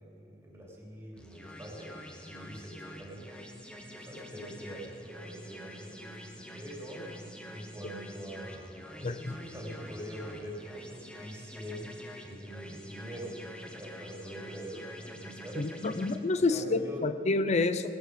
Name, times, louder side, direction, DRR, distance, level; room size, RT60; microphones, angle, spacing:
voice 1, 0.0-3.5 3.9-7.1 7.5-15.7 16.4-17.0, equal, 15° right, -3 dB, 3.2 m, -44 dB
sound 1, 1.2-16.2, equal, 5° left, 1.1 m, -47 dB
voice 2, 9.0-9.3 15.6-17.9, left 3 dB, 40° left, 11 dB, 0.6 m, -28 dB
18.0 x 12.0 x 5.0 m, 2.9 s
head